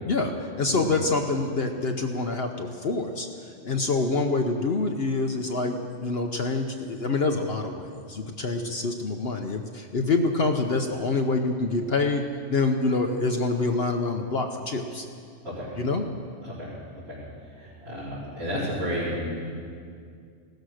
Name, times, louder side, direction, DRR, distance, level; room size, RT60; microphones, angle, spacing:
voice 1, 0.0-3.3 3.6-12.2 12.5-15.1 15.8-16.1, left 3 dB, 55° left, 4 dB, 1.0 m, -26 dB
voice 2, 17.5-19.4, equal, 50° right, -10 dB, 4.8 m, -32 dB
16.5 x 13.5 x 6.4 m, 2.3 s
omnidirectional pair, 1.3 m